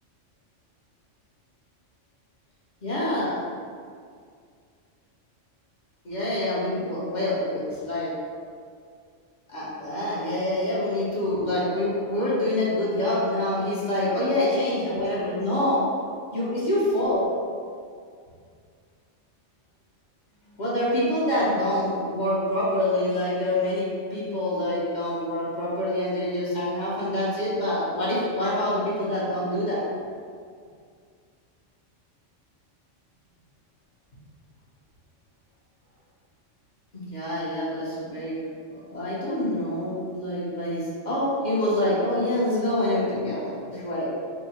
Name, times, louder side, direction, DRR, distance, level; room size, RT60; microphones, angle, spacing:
voice 1, 2.8-3.4 6.0-8.1 9.5-15.8 16.3-17.3 20.6-29.9 36.9-38.3 38.7-44.1, left 1 dB, 40° left, -8 dB, 0.9 m, -26 dB
3.6 x 2.0 x 4.2 m, 2.2 s
omnidirectional pair, 1.3 m